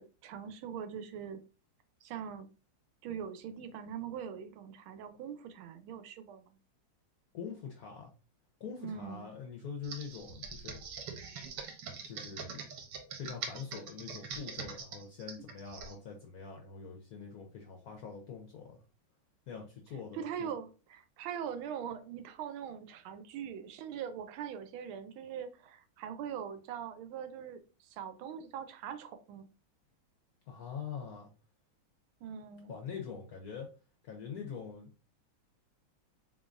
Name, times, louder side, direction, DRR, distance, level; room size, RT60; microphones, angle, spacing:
voice 1, 0.0-1.4 2.0-2.5 3.0-6.4 8.8-9.3 20.1-29.5 32.2-32.8, right 8 dB, 85° right, 1.4 m, -42 dB
voice 2, 7.3-8.1 8.6-10.8 12.0-12.6 13.2-18.8 19.5-20.5 30.5-31.3 32.7-33.7 34.0-34.9, left 6 dB, 70° left, 0.9 m, -44 dB
Computer keyboard, 9.8-15.9, right 5 dB, 65° right, 1.3 m, -43 dB
3.8 x 3.5 x 2.5 m
omnidirectional pair, 2.2 m